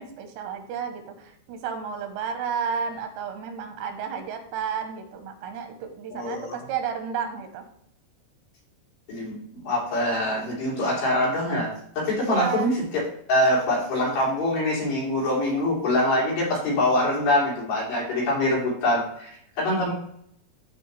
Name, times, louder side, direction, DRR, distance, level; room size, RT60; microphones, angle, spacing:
voice 1, 0.0-7.6 12.2-12.7, right 7 dB, 90° right, 6 dB, 3.3 m, -32 dB
voice 2, 6.1-6.6 9.1-11.7 12.0-12.8 13.3-19.3 19.6-19.9, left 1 dB, 80° left, -6 dB, 5.4 m, -24 dB
13.0 x 4.5 x 3.3 m, 0.69 s
omnidirectional pair, 4.7 m